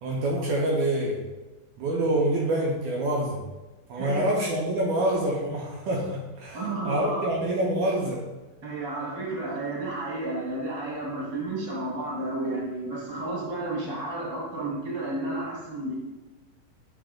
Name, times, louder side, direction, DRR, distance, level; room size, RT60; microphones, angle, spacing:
voice 1, 0.0-1.2 1.8-3.4 3.9-8.3, right 1 dB, 80° right, -2 dB, 1.8 m, -26 dB
voice 2, 6.5-7.2 8.6-16.0, right 2 dB, 35° right, -4 dB, 2.0 m, -32 dB
9.3 x 5.0 x 2.3 m, 1.2 s
omnidirectional pair, 4.2 m